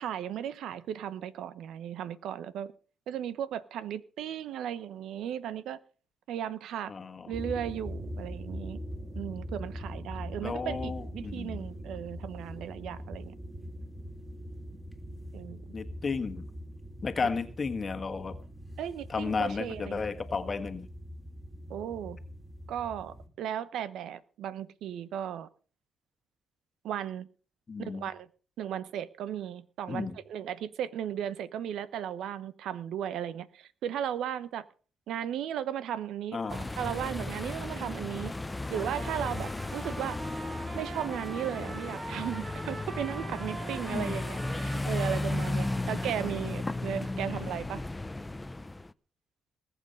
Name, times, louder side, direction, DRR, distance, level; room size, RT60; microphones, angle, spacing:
voice 1, 0.0-2.7 3.1-5.8 6.3-6.9 7.3-8.8 9.1-13.3 15.3-15.6 18.8-20.0 21.7-22.2 22.7-25.5 26.8-27.3 27.8-28.3 28.6-34.7 35.1-38.3 38.7-40.2 40.7-47.8, right 10 dB, 85° right, 16 dB, 1.0 m, -36 dB
voice 2, 6.9-7.3 10.4-11.7 15.7-16.5 17.0-18.4 19.1-20.9 27.7-28.1 29.9-30.1 36.3-36.7 43.9-44.2 47.3-47.6, left 4 dB, 35° left, 8 dB, 1.5 m, -33 dB
sound 1, 7.3-23.3, equal, 10° right, 3.3 m, -42 dB
sound 2, 36.5-48.9, left 2 dB, 15° left, 0.6 m, -35 dB
Trumpet, 38.7-46.6, right 2 dB, 45° right, 5.2 m, -44 dB
20.0 x 8.2 x 5.4 m, 0.39 s
cardioid pair, 95°, 0 cm